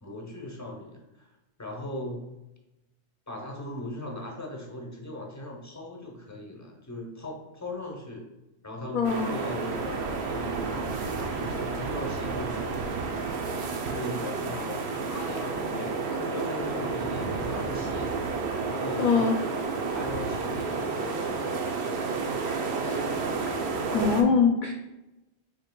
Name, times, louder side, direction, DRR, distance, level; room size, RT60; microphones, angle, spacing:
voice 1, 0.0-1.3 1.6-2.2 3.3-8.3 8.6-12.8 13.9-18.2 18.6-19.3 19.9-21.7, left 1 dB, 20° left, 0 dB, 0.7 m, -39 dB
voice 2, 8.9-9.3 16.1-16.2 19.0-19.3 22.8-23.0 23.9-24.7, left 5 dB, 60° left, 2 dB, 0.6 m, -23 dB
sound 1, 9.0-24.2, right 4 dB, 85° right, 0.9 m, -31 dB
6.5 x 3.1 x 2.2 m, 0.99 s
omnidirectional pair, 1.1 m